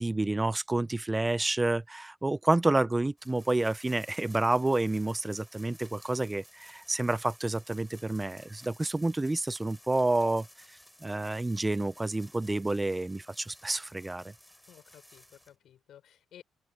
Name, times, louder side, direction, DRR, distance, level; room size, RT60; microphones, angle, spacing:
voice 1, 0.0-10.5 11.0-14.3, right 2 dB, 15° right, 0.6 m, -29 dB
sound 1, 3.2-15.5, equal, 5° left, 4.8 m, -55 dB
voice 2, 14.7-16.4, left 10 dB, 75° left, 4.7 m, -55 dB
open air
cardioid pair, 90°, 0 cm